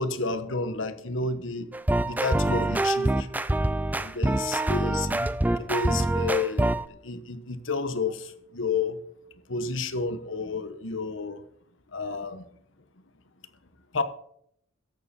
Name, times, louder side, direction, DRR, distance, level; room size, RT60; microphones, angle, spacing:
voice 1, 0.0-1.7 2.0-3.3 3.9-5.3 5.6-6.7 7.0-9.0 9.5-11.4 11.9-12.4 13.9-14.0, left 4 dB, 60° left, 11 dB, 1.2 m, -30 dB
sound 1, 1.7-6.9, right 1 dB, 10° right, 0.4 m, -25 dB
14.0 x 11.5 x 4.3 m, 0.68 s
head